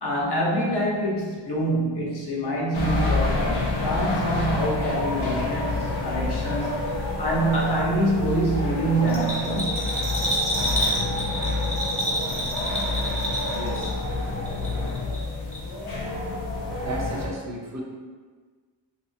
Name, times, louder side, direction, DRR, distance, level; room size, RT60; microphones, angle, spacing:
voice 1, 0.0-6.8 7.2-9.8, right 1 dB, 60° left, -4 dB, 0.7 m, -25 dB
sound 1, 2.7-17.3, left 2 dB, 90° left, 0.8 m, -28 dB
Bell, 9.1-14.2 14.5-15.2 15.5-15.6, equal, 15° left, 0.7 m, -28 dB
voice 2, 13.5-13.9 16.8-17.8, right 2 dB, 40° right, -2 dB, 0.4 m, -33 dB
2.7 x 2.3 x 2.6 m, 1.5 s
wide cardioid pair, 80°, 46 cm